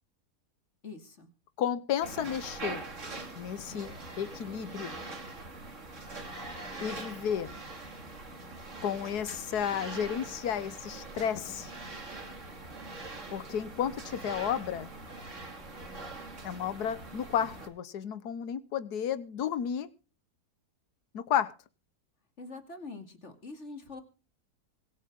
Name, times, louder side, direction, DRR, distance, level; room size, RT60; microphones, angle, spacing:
voice 1, 0.8-1.3 22.4-24.0, left 3 dB, 45° left, 7 dB, 2.7 m, -44 dB
voice 2, 1.6-2.8 3.3-3.9 4.2-4.9 6.8-7.5 8.8-11.7 13.3-14.9 16.4-19.9 21.1-21.5, left 9 dB, 70° left, 14 dB, 1.6 m, -32 dB
sound 1, 2.0-17.7, right 2 dB, 50° right, 2.9 m, -43 dB
24.5 x 9.3 x 3.7 m, 0.35 s
omnidirectional pair, 1.7 m